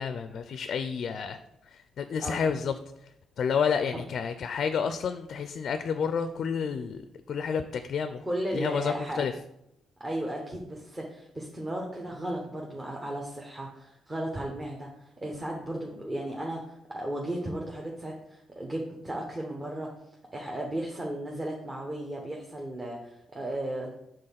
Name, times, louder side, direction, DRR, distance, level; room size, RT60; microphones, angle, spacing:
voice 1, 0.0-1.4 2.0-2.7 3.4-7.0 7.3-8.2 8.5-9.3, left 6 dB, 60° left, 10 dB, 0.4 m, -29 dB
voice 2, 2.2-2.5 3.9-4.0 8.2-9.2 10.0-19.9 20.3-23.9, right 1 dB, 20° right, -1 dB, 1.0 m, -35 dB
5.4 x 3.7 x 5.7 m, 0.82 s
cardioid pair, 90°, 0 cm